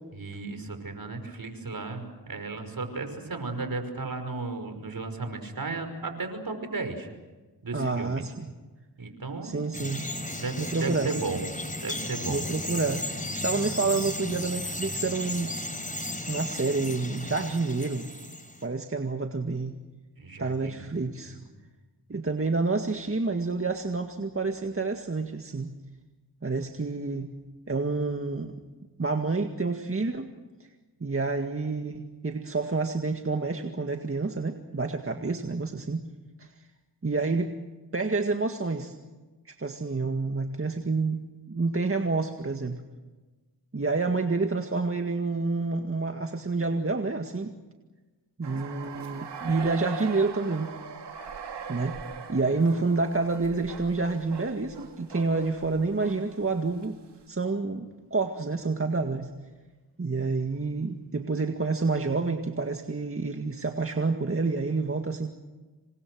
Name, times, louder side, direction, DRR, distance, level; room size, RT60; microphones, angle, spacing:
voice 1, 0.1-7.1 7.6-8.2 9.0-9.5 10.4-11.4 11.8-12.4 20.2-20.9 21.3-21.4, right 3 dB, 55° right, 7 dB, 5.5 m, -34 dB
voice 2, 7.7-8.5 9.4-10.1 10.6-11.1 12.3-15.5 16.3-18.1 18.6-19.7 20.4-21.3 22.1-25.7 26.4-27.3 27.7-28.6 29.0-30.3 31.0-36.0 36.4-36.5 37.0-37.5 37.9-38.9 39.5-41.2 41.5-42.8 43.7-47.5 48.4-50.7 51.7-52.0 52.3-57.0 57.3-59.3 60.0-65.3, right 3 dB, 30° right, 4 dB, 1.9 m, -28 dB
Bird vocalization bird call bird song, 9.7-18.6, left 1 dB, 20° left, 5.1 m, -35 dB
sound 1, 48.4-56.9, right 6 dB, 75° right, 2.6 m, -41 dB
28.0 x 24.5 x 6.4 m, 1.2 s
cardioid pair, 55°, 42 cm